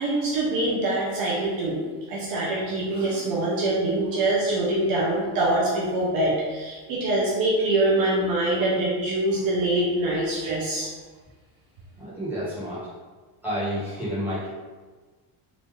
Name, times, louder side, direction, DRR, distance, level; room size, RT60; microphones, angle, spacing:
voice 1, 0.0-10.9, right 2 dB, 55° right, -5 dB, 0.9 m, -24 dB
voice 2, 12.0-12.9 13.4-14.5, equal, 5° right, -11 dB, 1.5 m, -30 dB
4.0 x 2.7 x 3.1 m, 1.3 s
cardioid pair, 170°, 42 cm